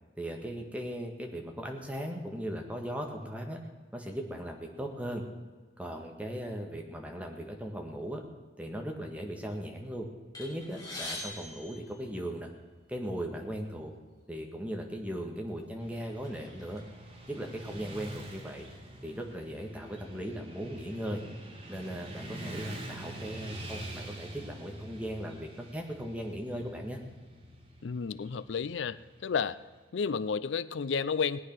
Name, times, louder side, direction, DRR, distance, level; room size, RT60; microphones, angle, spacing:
voice 1, 0.2-3.6 3.9-5.2 5.8-8.2 8.6-10.1 10.4-12.5 12.9-13.9 14.3-16.8 17.3-18.7 19.0-21.2 21.7-27.0, equal, 10° right, 2 dB, 1.6 m, -38 dB
sound 1, 10.3-12.7 13.5-13.6 14.0-14.1 15.0-15.2 15.6-16.8, left 1 dB, 20° left, 3.3 m, -43 dB
Motorcycle / Traffic noise roadway noise, 15.8-29.9, right 1 dB, 30° right, 2.2 m, -46 dB
voice 2, 27.8-29.6 29.9-31.4, left 6 dB, 85° left, 17 dB, 0.4 m, -31 dB
18.5 x 9.7 x 6.1 m, 1.4 s
head